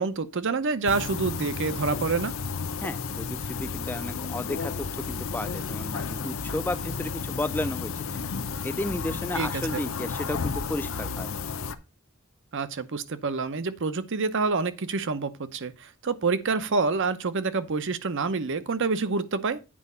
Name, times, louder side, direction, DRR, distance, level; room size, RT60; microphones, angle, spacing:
voice 1, 0.0-2.3 9.3-9.8 12.5-19.6, right 4 dB, 55° right, 0.7 m, -27 dB
sound 1, 0.9-11.7, left 5 dB, 65° left, 0.7 m, -32 dB
voice 2, 2.8-8.3 8.6-11.3, left 1 dB, 10° left, 0.3 m, -33 dB
8.6 x 4.7 x 5.4 m
head